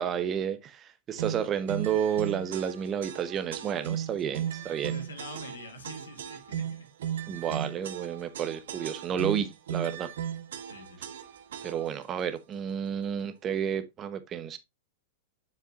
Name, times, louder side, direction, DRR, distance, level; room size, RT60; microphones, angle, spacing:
voice 1, 0.0-4.9 7.3-10.1 11.6-14.6, right 8 dB, 30° right, 1.0 m, -31 dB
sound 1, 1.2-12.0, right 9 dB, 75° right, 1.2 m, -36 dB
voice 2, 4.6-6.9 10.7-11.1, left 1 dB, 90° left, 2.7 m, -45 dB
7.5 x 6.8 x 2.6 m
hypercardioid pair, 110°, 0 cm